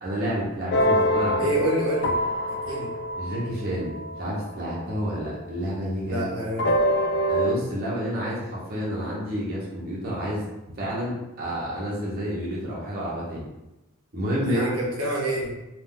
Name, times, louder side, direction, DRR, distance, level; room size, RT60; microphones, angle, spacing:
voice 1, 0.0-1.5 3.2-6.3 7.3-10.5 10.8-13.5 14.1-14.8, equal, 45° right, -6 dB, 0.8 m, -29 dB
sound 1, 0.7-5.3 6.6-7.5, equal, 50° left, 0.4 m, -25 dB
voice 2, 1.4-2.1 2.5-2.9 6.1-6.8 14.5-15.5, right 1 dB, 80° right, -4 dB, 0.8 m, -27 dB
2.4 x 2.3 x 3.6 m, 0.96 s
head